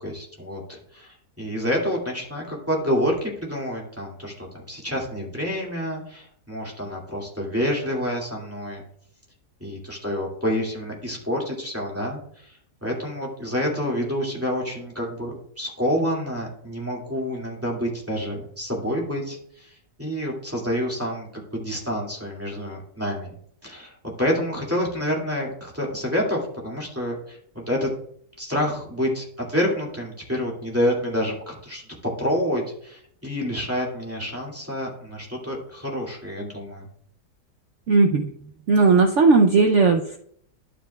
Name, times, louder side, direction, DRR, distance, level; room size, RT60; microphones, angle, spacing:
voice 1, 0.0-8.8 9.6-23.3 23.6-27.9 28.4-31.8 32.2-36.8, equal, 10° right, -3 dB, 2.1 m, -28 dB
voice 2, 37.9-38.3 38.7-40.2, right 4 dB, 65° right, 4 dB, 0.8 m, -17 dB
11.5 x 7.6 x 2.3 m, 0.65 s
omnidirectional pair, 1.7 m